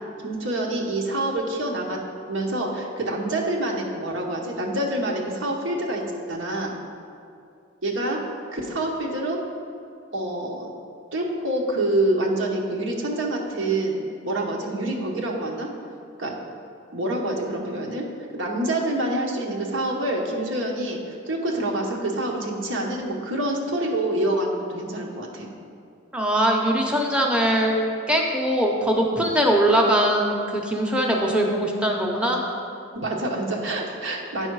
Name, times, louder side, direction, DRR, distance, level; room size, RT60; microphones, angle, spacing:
voice 1, 0.2-2.0 2.3-6.0 6.3-6.7 7.8-8.2 8.5-9.4 10.1-10.7 11.1-15.7 16.2-16.4 16.9-18.1 18.3-25.5 32.9-34.5, right 1 dB, 85° right, 0 dB, 1.1 m, -26 dB
voice 2, 26.1-32.4, right 1 dB, 5° right, 0 dB, 0.7 m, -21 dB
8.8 x 5.5 x 4.7 m, 2.4 s
head